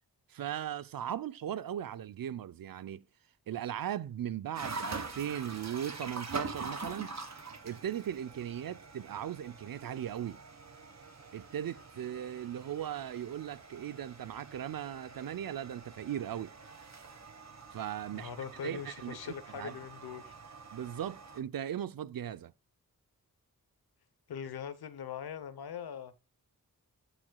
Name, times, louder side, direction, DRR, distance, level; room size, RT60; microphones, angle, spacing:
voice 1, 0.3-3.0 3.5-7.1 7.6-10.4 11.3-16.5 17.7-18.3 18.6-19.8 20.7-22.5, right 10 dB, 65° right, 0.6 m, -38 dB
sound 1, 4.6-21.4, right 4 dB, 45° right, 1.6 m, -45 dB
voice 2, 18.1-20.3 24.3-26.2, left 8 dB, 85° left, 0.9 m, -42 dB
14.0 x 5.0 x 2.3 m
cardioid pair, 45°, 37 cm